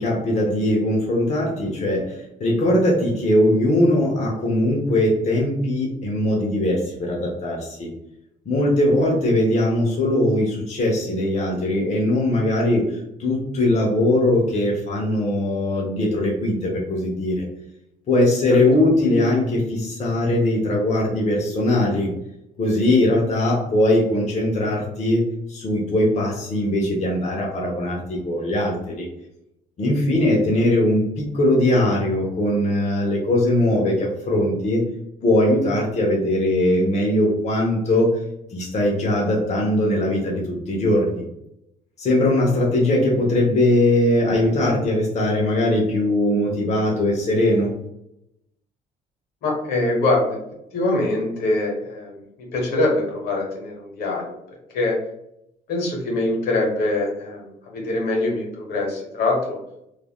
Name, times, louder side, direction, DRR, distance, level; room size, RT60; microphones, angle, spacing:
voice 1, 0.0-7.9 8.5-17.4 18.1-22.1 22.6-25.2 25.5-29.1 29.8-34.8 35.2-38.1 38.5-41.2 42.0-47.7, left 1 dB, 40° left, -2 dB, 0.8 m, -20 dB
voice 2, 49.4-50.4 50.7-52.2 52.5-54.4 54.7-55.0 55.7-59.6, left 2 dB, 75° left, -1 dB, 1.1 m, -23 dB
3.2 x 2.4 x 2.2 m, 0.81 s
supercardioid pair, 80°, 17 cm